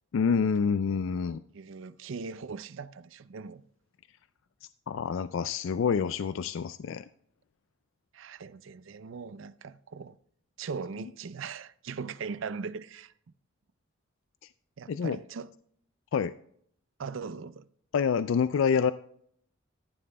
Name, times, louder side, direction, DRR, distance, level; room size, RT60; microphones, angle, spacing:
voice 1, 0.1-1.4 4.9-7.1 14.9-15.2 16.1-16.3 17.9-18.9, left 6 dB, 70° left, 0.3 m, -27 dB
voice 2, 1.5-3.6 8.1-10.2 10.6-13.1 14.8-15.5 17.0-17.7, right 5 dB, 70° right, 0.5 m, -39 dB
13.5 x 11.0 x 2.2 m
head